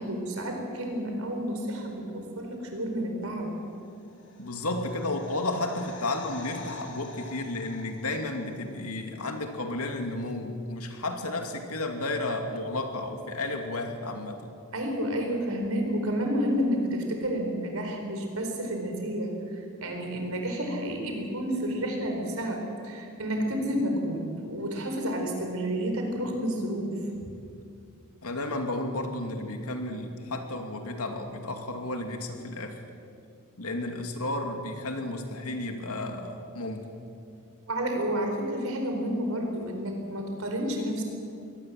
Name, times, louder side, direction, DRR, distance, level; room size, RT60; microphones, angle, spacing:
voice 1, 0.0-3.5 14.7-27.0 37.7-41.0, equal, 70° right, 3 dB, 4.5 m, -30 dB
sound 1, 3.9-8.8 9.1-9.2, left 3 dB, 55° left, 2.7 m, -45 dB
voice 2, 4.4-14.5 28.2-32.8 33.6-36.8, left 2 dB, 85° left, 4 dB, 2.6 m, -32 dB
22.5 x 18.5 x 7.7 m, 2.5 s
head